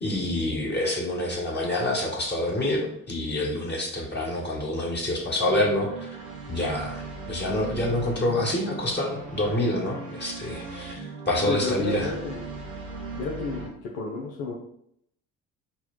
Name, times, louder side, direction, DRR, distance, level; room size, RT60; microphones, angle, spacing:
voice 1, 0.0-6.1 6.5-12.1, left 1 dB, 25° left, -3 dB, 1.4 m, -27 dB
sound 1, 5.4-13.7, right 3 dB, 80° right, 1.2 m, -38 dB
voice 2, 11.4-12.4 13.2-14.5, left 3 dB, 70° left, -3 dB, 0.8 m, -31 dB
4.1 x 2.3 x 4.4 m, 0.71 s
hypercardioid pair, 50°, 40 cm